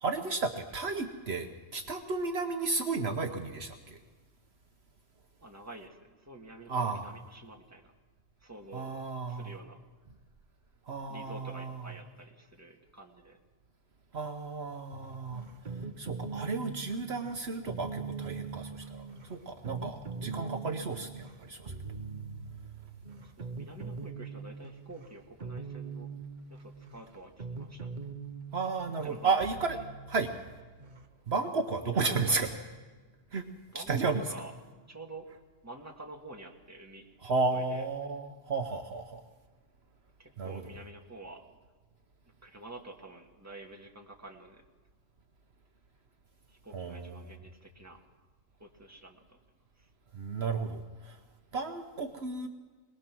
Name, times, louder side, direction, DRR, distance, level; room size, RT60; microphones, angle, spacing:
voice 1, 0.0-4.0 6.7-7.1 8.7-9.5 10.9-11.8 14.1-15.4 16.0-19.0 19.3-21.7 28.5-29.8 30.1-30.3 31.3-32.5 33.3-33.5 33.7-34.2 37.2-39.2 40.4-40.6 46.7-47.3 50.1-51.2 51.5-52.5, right 4 dB, 60° right, 5 dB, 1.2 m, -33 dB
voice 2, 5.4-7.9 8.4-8.9 9.3-9.8 11.1-13.4 23.4-26.1 26.6-27.9 29.0-29.4 31.8-32.4 33.7-34.5 34.9-35.3 35.6-37.1 37.5-37.8 40.2-41.4 42.4-44.6 46.6-48.0 48.6-49.4, right 2 dB, 15° right, 1 dB, 1.9 m, -48 dB
sound 1, 14.9-31.1, right 4 dB, 40° right, 1.1 m, -42 dB
22.5 x 20.0 x 6.1 m, 1.4 s
omnidirectional pair, 1.2 m